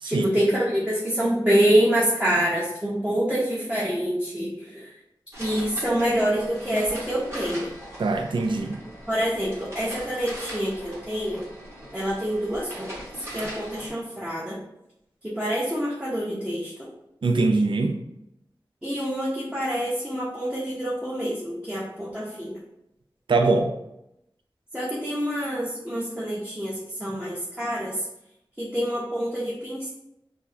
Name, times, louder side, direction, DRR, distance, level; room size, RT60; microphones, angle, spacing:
voice 1, 0.0-4.9 5.4-7.7 9.1-11.4 11.9-12.9 13.3-14.6 15.2-16.9 18.8-22.6 24.7-26.7 27.0-27.9 28.6-29.9, equal, 10° right, -6 dB, 0.8 m, -26 dB
sound 1, 5.3-13.9, equal, 30° right, 1.5 m, -40 dB
voice 2, 8.0-8.8 17.2-18.0 23.3-23.7, right 3 dB, 65° right, 4 dB, 0.3 m, -22 dB
4.4 x 2.1 x 2.7 m, 0.84 s
cardioid pair, 40°, 9 cm